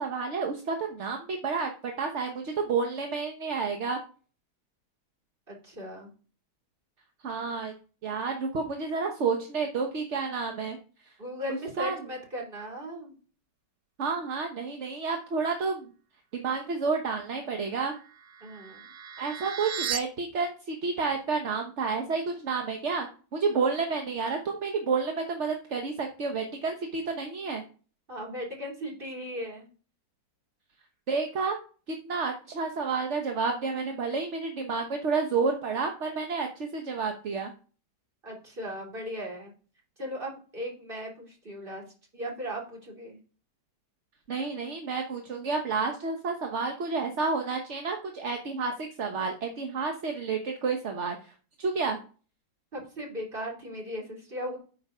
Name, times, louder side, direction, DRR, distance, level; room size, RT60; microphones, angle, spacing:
voice 1, 0.0-1.7 2.0-4.0 7.2-7.8 8.0-10.8 11.8-11.9 14.0-15.8 16.3-17.9 19.2-23.1 23.3-27.6 31.1-31.6 31.9-37.5 44.3-51.2 51.6-52.0, right 4 dB, 45° right, 4 dB, 1.1 m, -30 dB
voice 2, 5.5-6.1 11.2-13.2 18.4-18.9 28.1-29.7 38.2-39.5 40.0-41.8 42.1-43.2 52.7-54.6, equal, 30° right, -1 dB, 2.9 m, -37 dB
sound 1, 17.8-20.0, right 8 dB, 75° right, 0.5 m, -36 dB
8.6 x 5.9 x 5.5 m, 0.39 s
omnidirectional pair, 1.9 m